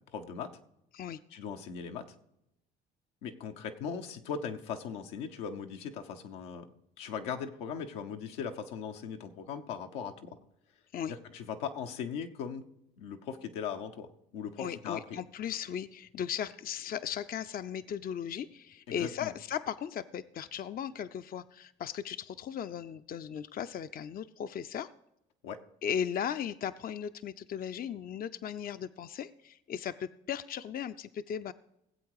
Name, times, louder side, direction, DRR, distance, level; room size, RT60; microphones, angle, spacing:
voice 1, 0.1-0.5 1.3-2.1 3.2-6.7 7.0-10.4 11.1-12.6 13.0-14.1 14.3-15.0 18.9-19.3 25.4-25.6, left 7 dB, 90° left, 5 dB, 1.0 m, -39 dB
voice 2, 14.6-24.9 25.8-31.5, left 8 dB, 45° left, 11 dB, 0.5 m, -37 dB
17.5 x 8.0 x 4.9 m, 0.84 s
supercardioid pair, 70°, 21 cm